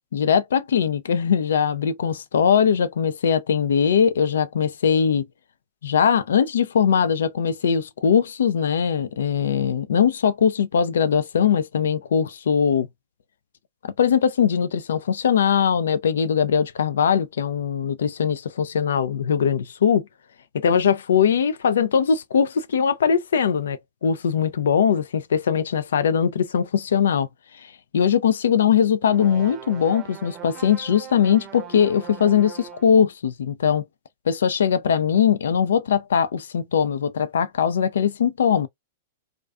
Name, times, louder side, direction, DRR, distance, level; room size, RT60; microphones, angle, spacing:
voice 1, 0.1-5.3 5.8-12.9 13.8-20.0 20.5-27.3 27.9-33.8 34.3-38.7, left 7 dB, 70° left, 0.3 m, -21 dB
sound 1, 29.0-33.0, right 9 dB, 35° right, 0.6 m, -40 dB
2.4 x 2.3 x 2.2 m
hypercardioid pair, 105°, 0 cm